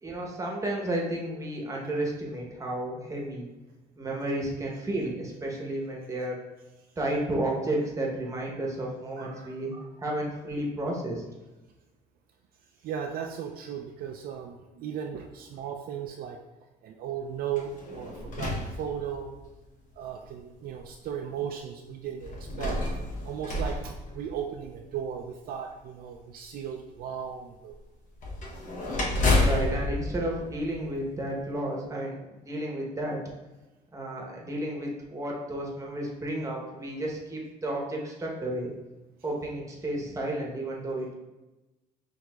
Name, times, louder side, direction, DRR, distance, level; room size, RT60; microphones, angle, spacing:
voice 1, 0.0-3.5 4.0-6.5 7.0-11.2 29.4-33.2 33.9-38.7 39.2-41.1, right 1 dB, 20° right, -1 dB, 0.9 m, -32 dB
voice 2, 9.2-9.6 12.8-16.4 16.8-19.3 20.0-22.8 23.2-27.8, right 8 dB, 60° right, 2 dB, 0.4 m, -36 dB
sound 1, 17.5-19.5 20.3-20.4 22.2-24.8 28.2-31.3, left 2 dB, 50° left, 0.9 m, -30 dB
6.1 x 2.7 x 2.3 m, 1.1 s
cardioid pair, 110°, 17 cm